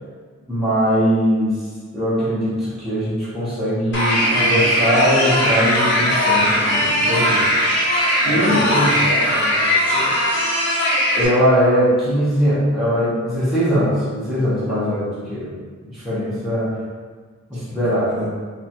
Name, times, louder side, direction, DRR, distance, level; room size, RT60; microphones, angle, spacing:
voice 1, 0.5-1.6 1.9-7.5 8.3-8.9 11.2-15.5 15.8-16.8 17.5-18.3, equal, ahead, -12 dB, 0.9 m, -20 dB
sound 1, 3.9-11.2, equal, 55° left, 1.3 m, -19 dB
voice 2, 8.2-10.1 17.5-18.3, equal, 35° right, -5 dB, 0.6 m, -31 dB
2.8 x 2.4 x 4.2 m, 1.5 s
head